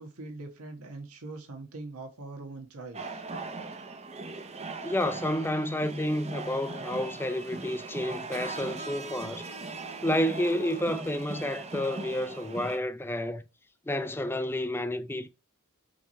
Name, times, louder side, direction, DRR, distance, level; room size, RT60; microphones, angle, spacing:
voice 1, 0.0-3.2 3.7-3.8, right 2 dB, 75° right, 1.4 m, -42 dB
sound 1, 2.9-12.8, right 3 dB, 30° right, 0.7 m, -39 dB
voice 2, 4.8-9.5 10.0-13.4 13.9-15.3, left 1 dB, 10° left, 0.4 m, -30 dB
7.0 x 3.2 x 4.3 m
head